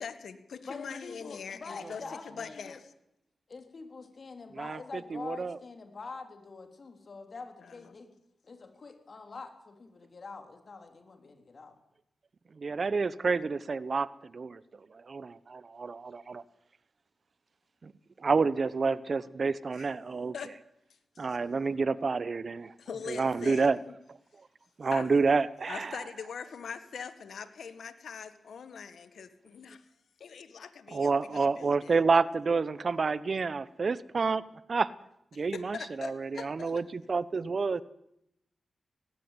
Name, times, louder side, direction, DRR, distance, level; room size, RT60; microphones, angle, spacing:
voice 1, 0.0-2.8 19.7-19.9 20.3-20.5 21.1-21.4 22.8-23.9 24.9-25.1 25.7-29.9 30.2-31.9 35.3-36.8, left 6 dB, 80° left, 12 dB, 1.6 m, -42 dB
voice 2, 0.6-2.8 3.5-8.1 8.4-11.8, left 4 dB, 60° left, 6 dB, 3.5 m, -45 dB
voice 3, 5.1-5.6 12.6-14.6 14.9-16.4 17.8-17.9 18.2-20.3 21.2-22.7 23.1-23.8 24.8-25.9 30.9-34.4 34.7-34.9 35.3-37.8, right 4 dB, 55° right, 18 dB, 1.0 m, -29 dB
18.0 x 16.5 x 9.1 m, 0.81 s
cardioid pair, 45°, 0 cm